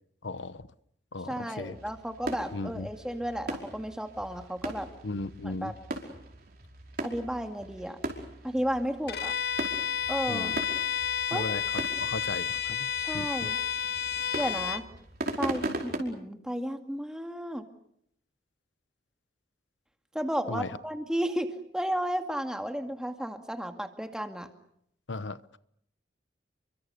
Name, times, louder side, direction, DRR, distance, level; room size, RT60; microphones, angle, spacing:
voice 1, 0.2-0.6 1.1-1.8 2.5-2.9 5.0-5.7 10.3-10.6 11.3-11.6 12.0-12.9 13.1-13.5 20.5-20.7 25.1-25.6, left 3 dB, 85° left, 15 dB, 1.0 m, -36 dB
voice 2, 1.3-4.9 5.4-5.7 7.0-8.0 8.4-9.3 10.1-10.5 11.3-11.5 13.0-13.6 14.4-14.8 15.4-17.7 20.1-24.5, equal, 5° right, 6 dB, 2.2 m, -33 dB
sound 1, 1.6-16.0, right 1 dB, 55° right, 5.2 m, -39 dB
Bowed string instrument, 9.1-14.9, left 8 dB, 60° left, 1.4 m, -31 dB
30.0 x 24.0 x 6.8 m, 0.72 s
head